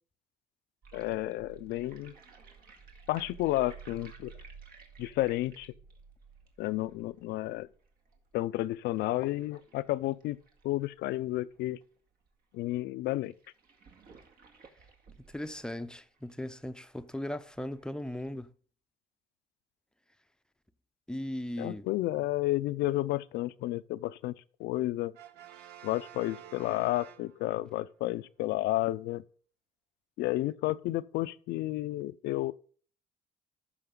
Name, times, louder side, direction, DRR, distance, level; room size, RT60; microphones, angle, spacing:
sound 1, 0.8-11.8 12.3-12.4 12.5-12.6 13.2-18.3, right 6 dB, 60° right, 2.2 m, -54 dB
voice 1, 0.9-2.1 3.1-4.3 5.0-5.7 6.6-7.7 8.3-10.4 10.6-11.8 12.5-13.3 21.6-24.3 24.6-25.2 25.8-29.2 30.2-32.5, left 16 dB, 80° left, 0.6 m, -31 dB
voice 2, 15.3-18.5 21.1-21.9, left 1 dB, 5° left, 0.6 m, -38 dB
Brass instrument, 25.1-27.8, right 11 dB, 80° right, 0.8 m, -50 dB
13.5 x 5.9 x 3.8 m
cardioid pair, 110°, 17 cm